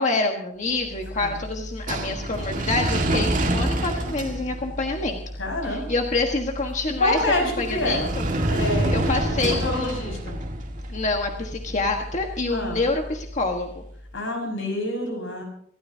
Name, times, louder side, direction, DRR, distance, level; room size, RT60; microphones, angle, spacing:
voice 1, 0.0-5.2 5.7-8.2 8.9-10.2 10.9-13.8, left 3 dB, 40° left, 2 dB, 1.5 m, -27 dB
sound 1, 0.7-13.8, right 1 dB, 45° right, 1.9 m, -29 dB
voice 2, 5.4-5.9 7.0-8.1 8.5-10.4 12.5-12.8 14.1-15.4, left 1 dB, 85° left, 1 dB, 5.8 m, -27 dB
26.0 x 13.5 x 2.8 m, 0.63 s
head